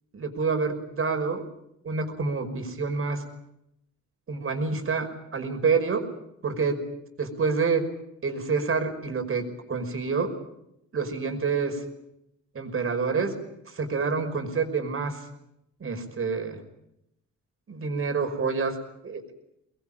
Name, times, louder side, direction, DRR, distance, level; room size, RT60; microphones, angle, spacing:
voice 1, 0.1-1.4 1.8-3.2 4.3-6.0 6.4-6.8 7.2-7.8 8.2-10.3 10.9-11.8 12.5-15.2 15.8-16.6 17.7-18.8 19.0-19.2, right 4 dB, 45° right, 6 dB, 5.6 m, -27 dB
24.5 x 21.5 x 8.9 m, 0.82 s
cardioid pair, 90°, 30 cm